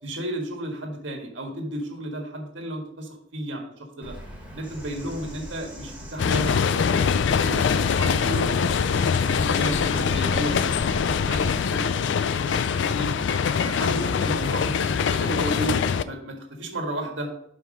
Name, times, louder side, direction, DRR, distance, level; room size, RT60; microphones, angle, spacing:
voice 1, 0.0-4.1 4.5-8.9 9.2-12.1 12.4-13.1 13.5-15.7 16.0-17.3, right 1 dB, 75° right, 2 dB, 1.7 m, -33 dB
Bird vocalization bird call bird song, 4.0-11.6, equal, 5° right, 2.1 m, -38 dB
sound 1, 6.2-16.0, left 6 dB, 65° left, 0.4 m, -23 dB
5.9 x 4.9 x 5.0 m, 0.70 s
head